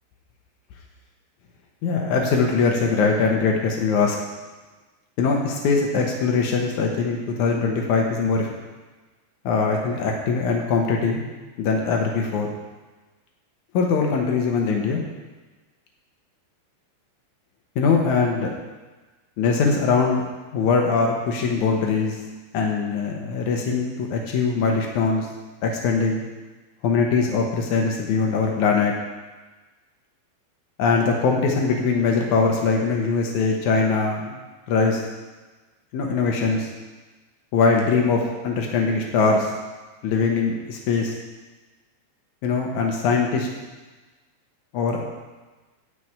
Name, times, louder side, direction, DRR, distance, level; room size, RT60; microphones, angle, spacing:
voice 1, 1.8-4.2 5.2-8.5 9.4-11.2 11.6-12.5 13.7-15.0 17.7-18.5 19.4-20.2 20.5-22.2 22.5-25.3 25.6-26.2 26.8-28.9 30.8-34.4 34.7-35.0 35.9-36.7 37.5-39.5 40.0-41.1 42.4-43.5 44.7-45.0, left 4 dB, 90° left, 0 dB, 1.7 m, -22 dB
12.5 x 4.9 x 8.7 m, 1.3 s
omnidirectional pair, 5.1 m